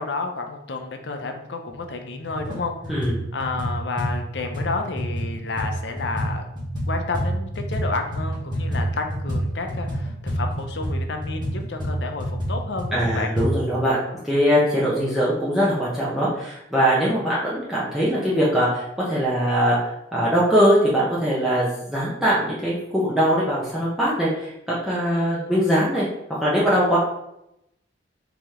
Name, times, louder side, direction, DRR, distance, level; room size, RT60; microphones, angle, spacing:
voice 1, 0.0-3.1 3.3-6.4 6.9-13.3 25.1-25.5, left 3 dB, 65° left, 5 dB, 0.6 m, -31 dB
sound 1, 1.7-1.8 2.2-2.6 2.8-7.8 8.1-13.5, equal, 25° right, 1.3 m, -28 dB
voice 2, 12.9-14.0 14.2-19.8 20.1-26.0 26.4-27.0, equal, ahead, -9 dB, 0.9 m, -21 dB
4.9 x 2.9 x 3.6 m, 0.82 s
head